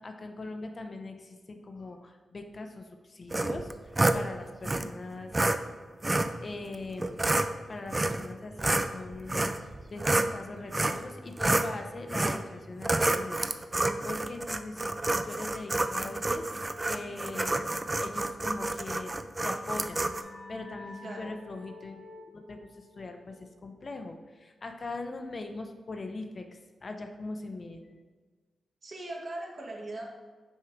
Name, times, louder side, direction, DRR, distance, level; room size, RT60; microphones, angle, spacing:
voice 1, 0.0-5.3 6.4-7.2 7.7-9.5 9.9-19.1 19.4-20.0 20.5-28.0, left 3 dB, 45° left, 5 dB, 0.6 m, -41 dB
sound 1, 3.3-4.2 4.6-4.8 5.3-5.6 6.0-6.3 7.0-7.5 7.9-8.3 8.6-10.3 10.7-11.0 11.4-11.7 12.1-12.4 12.8-20.2, right 2 dB, 25° right, 0.4 m, -28 dB
sound 2, 19.2-24.6, left 2 dB, 80° left, 0.9 m, -50 dB
voice 2, 28.8-30.0, right 2 dB, 55° right, -2 dB, 1.5 m, -40 dB
6.4 x 3.7 x 4.5 m, 1.4 s
cardioid pair, 85°, 0 cm